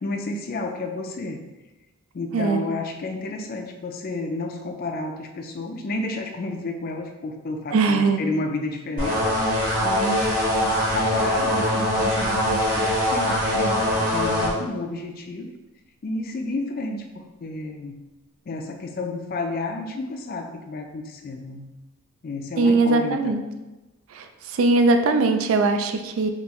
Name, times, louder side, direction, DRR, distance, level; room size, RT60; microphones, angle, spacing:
voice 1, 0.0-1.5 2.1-9.6 9.8-15.5 16.0-18.0 18.5-21.7 22.2-23.4, left 2 dB, 40° left, 4 dB, 0.3 m, -31 dB
voice 2, 7.7-8.2 22.6-23.4 24.1-26.3, right 3 dB, 65° right, 7 dB, 0.3 m, -20 dB
sound 1, 9.0-14.5, equal, 40° right, 1.3 m, -22 dB
3.7 x 2.5 x 3.0 m, 1.1 s
head